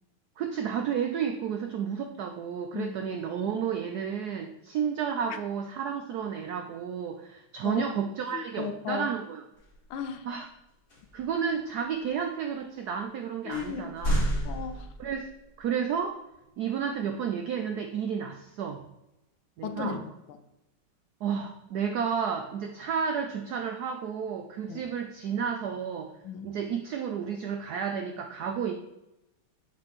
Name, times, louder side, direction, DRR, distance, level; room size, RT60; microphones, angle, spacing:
voice 1, 0.4-9.4 10.3-10.5 11.1-14.4 15.0-15.3 15.6-16.2 16.6-18.8 19.6-20.0 21.2-26.1 26.4-28.7, right 7 dB, 80° right, 5 dB, 0.8 m, -31 dB
voice 2, 8.3-9.1 9.9-10.3 13.4-14.0 14.4-14.9 19.6-20.4 24.7-24.8 26.2-26.5, left 7 dB, 75° left, 9 dB, 1.4 m, -35 dB
sound 1, 9.6-9.9 10.9-11.3 12.0-12.1 12.9-13.0 13.5-15.4, equal, 40° left, 3.3 m, -31 dB
7.5 x 6.1 x 3.0 m, 0.92 s
omnidirectional pair, 2.3 m